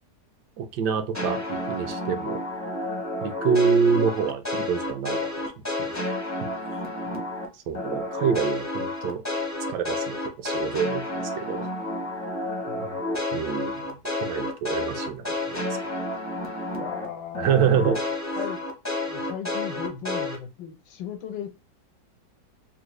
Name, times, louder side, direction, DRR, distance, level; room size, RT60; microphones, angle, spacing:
voice 1, 0.6-2.4 3.2-5.2 5.8-5.9 7.7-9.2 9.7-11.0 11.4-11.7 13.3-13.8 14.2-15.7 17.4-18.0, right 7 dB, 75° right, 1.2 m, -26 dB
sound 1, 1.1-7.5 7.7-17.1 17.3-20.4, left 2 dB, 20° left, 0.4 m, -30 dB
voice 2, 12.7-13.0 16.7-17.9 18.4-18.6 19.1-21.6, left 9 dB, 75° left, 1.2 m, -37 dB
3.6 x 2.0 x 3.1 m
omnidirectional pair, 1.9 m